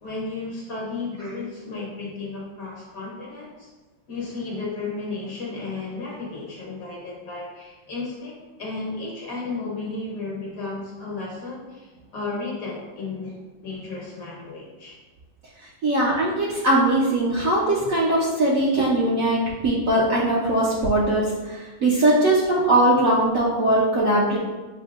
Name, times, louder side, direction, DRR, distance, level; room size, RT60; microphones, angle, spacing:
voice 1, 0.0-3.7 4.1-15.0 15.8-15.9, left 3 dB, 60° left, -3 dB, 1.0 m, -33 dB
voice 2, 15.8-24.4, right 1 dB, 65° right, -5 dB, 0.9 m, -20 dB
7.4 x 2.7 x 2.4 m, 1.2 s
omnidirectional pair, 2.1 m